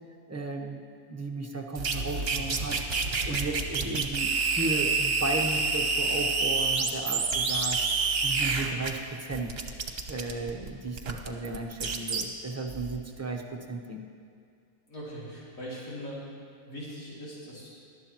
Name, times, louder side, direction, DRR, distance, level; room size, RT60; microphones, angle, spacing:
voice 1, 0.3-0.8 1.1-9.6 10.1-14.0, right 2 dB, 15° right, 1 dB, 0.7 m, -35 dB
sound 1, 1.8-8.9 9.3-12.2 12.7-13.0, right 4 dB, 50° right, 1.1 m, -28 dB
voice 2, 14.9-16.2 16.6-17.7, equal, 85° left, -8 dB, 3.1 m, -40 dB
19.0 x 12.0 x 3.0 m, 2.2 s
omnidirectional pair, 1.5 m